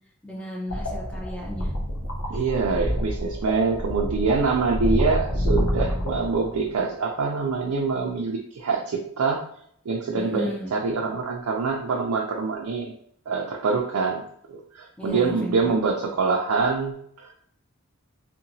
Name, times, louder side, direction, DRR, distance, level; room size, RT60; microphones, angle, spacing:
voice 1, 0.2-1.7 10.1-10.7 15.0-15.7, left 1 dB, 5° left, -3 dB, 0.5 m, -34 dB
sound 1, 0.7-6.8, equal, 65° left, 0.6 m, -28 dB
voice 2, 2.3-9.4 9.9-12.9 13.3-14.2 14.5-17.3, right 4 dB, 85° right, 0 dB, 0.4 m, -25 dB
2.8 x 2.2 x 2.6 m, 0.67 s
head